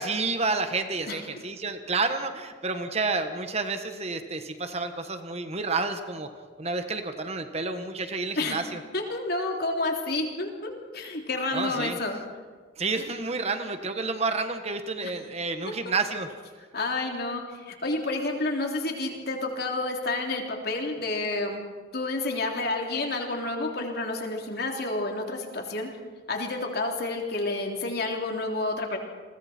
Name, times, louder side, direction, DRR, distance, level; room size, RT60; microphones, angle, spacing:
voice 1, 0.0-6.3 6.6-8.8 11.5-12.0 12.8-16.3, right 3 dB, 35° right, 8 dB, 1.4 m, -30 dB
voice 2, 8.9-12.2 16.7-21.6 21.9-25.9 26.3-29.0, left 2 dB, 60° left, 2 dB, 3.4 m, -30 dB
30.0 x 21.5 x 4.5 m, 1.5 s
head